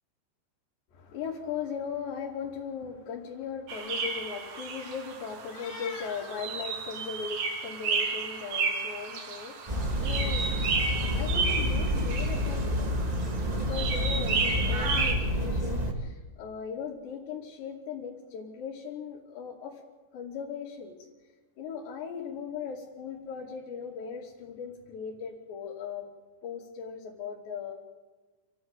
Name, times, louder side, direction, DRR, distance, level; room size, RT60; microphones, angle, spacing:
voice 1, 0.9-10.6 11.1-13.0 13.4-19.8 20.1-21.0 21.6-26.1 26.4-27.8, left 6 dB, 75° left, -5 dB, 5.0 m, -38 dB
sound 1, 3.7-15.1, right 4 dB, 60° right, 3.9 m, -32 dB
sound 2, 9.7-15.9, equal, 20° right, 0.9 m, -29 dB
28.5 x 15.0 x 9.1 m, 1.3 s
omnidirectional pair, 5.1 m